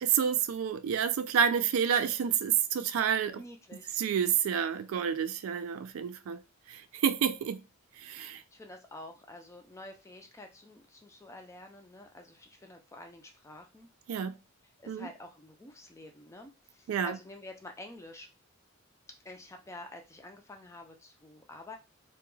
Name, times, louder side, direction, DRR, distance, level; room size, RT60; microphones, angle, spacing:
voice 1, 0.0-3.4 4.0-6.4 6.7-7.6 8.0-8.4 14.1-14.4 14.9-15.1 16.9-17.2, right 8 dB, 80° right, 0.3 m, -29 dB
voice 2, 3.3-4.0 8.5-13.9 14.8-18.3 19.2-21.8, left 1 dB, 15° left, 0.4 m, -48 dB
2.2 x 2.1 x 3.1 m
head